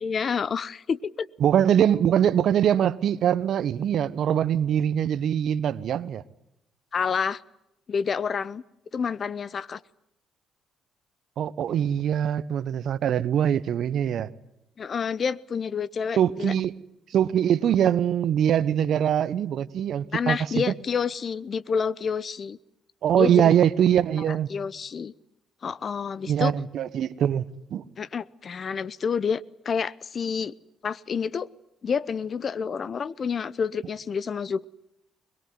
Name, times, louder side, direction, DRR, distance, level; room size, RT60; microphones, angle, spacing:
voice 1, 0.0-1.3 6.9-7.4 7.9-8.6 8.9-9.8 14.8-16.5 20.1-22.6 23.1-23.5 24.5-25.1 25.6-26.5 28.0-30.5 30.8-31.5 31.8-34.7, left 6 dB, 50° left, 0.9 m, -28 dB
voice 2, 1.4-6.2 11.4-14.3 16.2-16.7 17.1-20.7 23.0-24.5 26.3-27.8, right 9 dB, 60° right, 1.1 m, -23 dB
22.0 x 21.5 x 9.5 m
hypercardioid pair, 55°, 0 cm